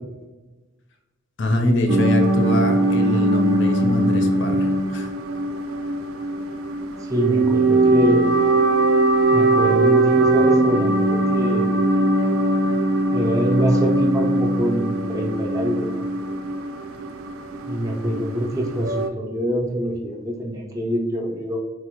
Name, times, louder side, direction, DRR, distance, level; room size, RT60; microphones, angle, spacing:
voice 1, 1.4-5.1, left 1 dB, 60° left, 4 dB, 0.5 m, -23 dB
sound 1, 1.9-19.1, right 2 dB, 80° right, 0.4 m, -20 dB
voice 2, 7.0-8.4 9.3-11.7 13.1-16.1 17.7-21.6, equal, 15° right, 0 dB, 0.4 m, -25 dB
4.0 x 2.1 x 2.9 m, 1.2 s
head